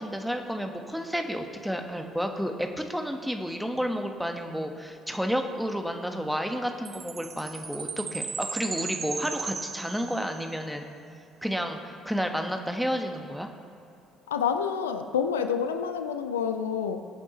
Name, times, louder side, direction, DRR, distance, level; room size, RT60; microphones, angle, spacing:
voice 1, 0.0-10.9 11.4-13.5, equal, ahead, 4 dB, 1.4 m, -31 dB
Chime, 6.9-10.6, right 5 dB, 40° right, 1.0 m, -36 dB
voice 2, 14.3-17.0, left 7 dB, 80° left, 8 dB, 0.5 m, -28 dB
21.0 x 8.6 x 3.1 m, 2.7 s
figure-of-eight pair, 50°, 0 cm